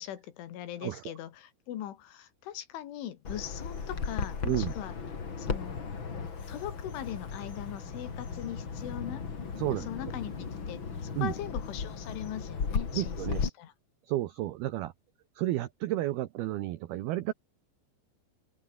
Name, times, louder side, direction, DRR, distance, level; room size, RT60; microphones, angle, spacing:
voice 1, 0.0-4.9 5.4-5.8 6.5-9.3 9.7-13.7, left 11 dB, 75° left, 4.6 m, -40 dB
Bird vocalization bird call bird song, 3.2-13.5, left 5 dB, 35° left, 2.4 m, -36 dB
voice 2, 9.6-10.1 11.2-11.3 12.9-13.4 14.1-14.9 15.4-17.3, right 15 dB, 80° right, 2.2 m, -32 dB
open air
omnidirectional pair, 5.7 m